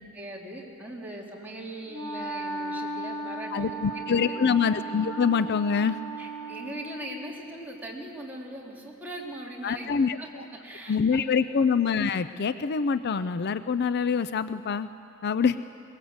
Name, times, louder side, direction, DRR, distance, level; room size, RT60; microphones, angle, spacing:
voice 1, 0.1-4.3 6.2-11.3, right 1 dB, 10° right, -3 dB, 3.1 m, -40 dB
Wind instrument woodwind instrument, 1.9-7.3, right 2 dB, 25° left, 1.7 m, -36 dB
voice 2, 3.5-6.0 9.6-10.4 10.9-14.9 15.2-15.6, left 6 dB, 50° left, 13 dB, 0.4 m, -25 dB
22.0 x 20.5 x 8.0 m, 2.7 s
head